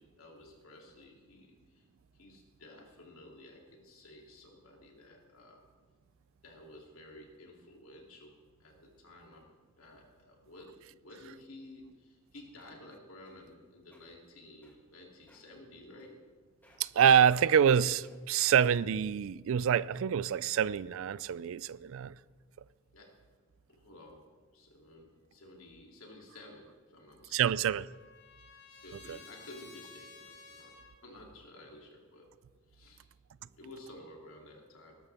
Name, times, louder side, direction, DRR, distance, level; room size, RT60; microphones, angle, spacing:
voice 1, 0.0-1.9 2.2-5.6 6.4-8.3 8.6-9.5 9.7-16.2 22.9-23.2 23.7-27.5 28.8-30.8 31.0-32.3 32.7-33.1 33.4-35.0, left 1 dB, 70° left, 2.9 m, -53 dB
sound 1, 12.2-12.3 12.6-12.9 13.3-13.5 13.8-14.0 14.6-15.0 15.3-15.5 16.0-16.4 16.6-17.0 17.3-17.5 18.0-18.4 19.0-19.1, left 1 dB, 10° left, 2.1 m, -64 dB
voice 2, 16.8-22.1 27.3-27.9 29.1-29.2, right 8 dB, 65° right, 0.4 m, -26 dB
Trumpet, 27.1-31.0, left 4 dB, 50° left, 2.0 m, -54 dB
20.0 x 12.0 x 3.5 m
head